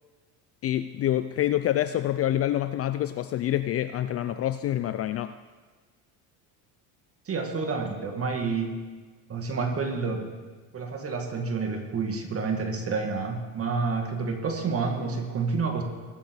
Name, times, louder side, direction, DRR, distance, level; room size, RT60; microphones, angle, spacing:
voice 1, 0.6-5.3, left 12 dB, 35° left, 12 dB, 0.4 m, -27 dB
voice 2, 7.3-8.8 9.3-10.3 10.7-15.8, right 4 dB, 35° right, 4 dB, 2.2 m, -29 dB
20.5 x 7.0 x 4.8 m, 1.4 s
supercardioid pair, 105°, 41 cm